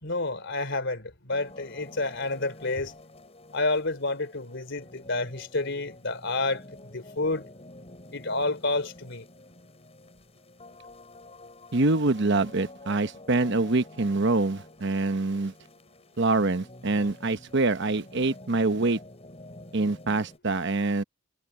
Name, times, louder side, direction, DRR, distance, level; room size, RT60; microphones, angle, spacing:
voice 1, 0.0-3.0 3.5-7.5 8.1-9.3, left 2 dB, 60° left, 3.6 m, -29 dB
sound 1, 1.3-20.4, left 1 dB, 30° left, 7.3 m, -49 dB
voice 2, 11.7-15.5 16.2-19.0 19.7-21.0, right 3 dB, 60° right, 1.0 m, -25 dB
head